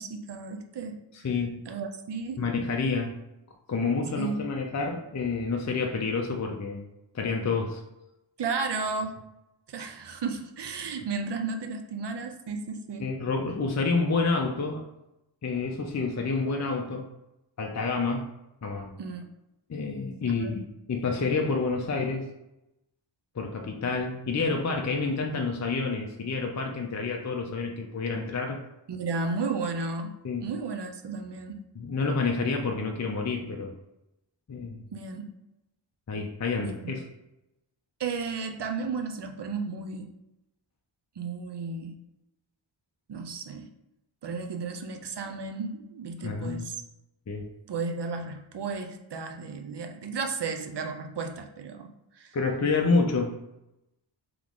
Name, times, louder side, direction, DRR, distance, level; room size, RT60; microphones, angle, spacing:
voice 1, 0.0-1.0 1.7-2.4 4.2-4.5 8.4-9.2 9.7-13.1 19.0-19.3 20.4-20.6 28.9-31.7 34.9-35.3 36.6-36.7 38.0-40.1 41.2-42.0 43.1-43.7 44.2-46.8 47.7-52.3, right 4 dB, 60° right, 5 dB, 0.6 m, -33 dB
voice 2, 1.1-1.6 2.4-3.1 3.7-6.8 7.1-7.8 13.0-14.8 15.4-17.1 17.6-18.3 18.6-18.9 19.7-22.3 23.4-28.6 30.2-30.5 31.8-33.7 34.5-34.8 36.1-37.0 46.2-46.7 47.3-47.5 52.3-53.4, left 4 dB, 35° left, 1 dB, 0.5 m, -28 dB
3.7 x 3.0 x 3.6 m, 0.91 s
wide cardioid pair, 75°, 47 cm